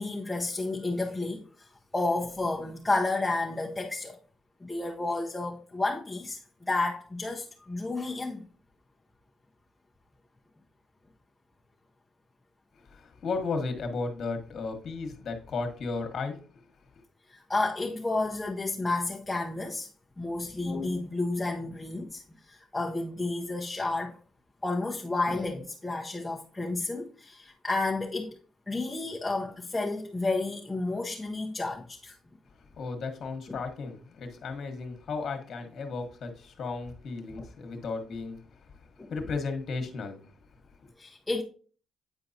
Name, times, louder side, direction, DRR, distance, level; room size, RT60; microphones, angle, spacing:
voice 1, 0.0-1.7 1.9-4.2 4.6-8.5 17.3-19.9 20.2-22.2 22.5-24.2 24.6-28.3 28.7-32.2 37.4-37.5 39.0-39.1 41.0-41.4, left 2 dB, 15° left, 0.8 m, -31 dB
voice 2, 12.8-16.4 32.8-38.4 38.8-40.3, left 4 dB, 55° left, 1.3 m, -34 dB
9.0 x 4.6 x 2.7 m
cardioid pair, 90°, 0 cm